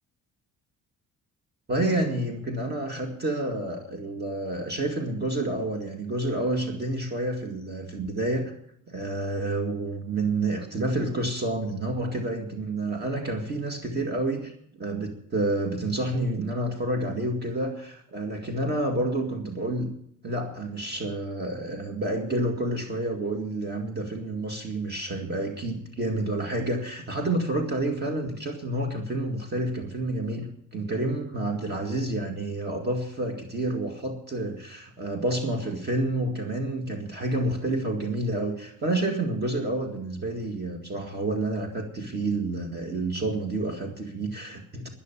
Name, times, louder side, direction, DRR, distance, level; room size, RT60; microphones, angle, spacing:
voice 1, 1.7-8.5 8.9-14.5 14.8-19.9 20.2-44.9, right 2 dB, 30° right, 2 dB, 2.0 m, -29 dB
13.0 x 10.5 x 7.0 m, 0.70 s
cardioid pair, 165°, 34 cm